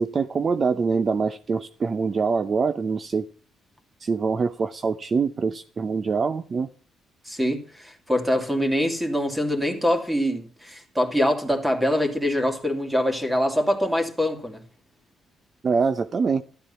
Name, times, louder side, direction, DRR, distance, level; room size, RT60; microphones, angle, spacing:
voice 1, 0.0-3.3 4.0-6.7 15.6-16.4, right 5 dB, 40° right, 0.7 m, -24 dB
voice 2, 7.3-14.6, equal, 5° right, 2.9 m, -24 dB
13.0 x 12.0 x 5.7 m
cardioid pair, 90°, 0 cm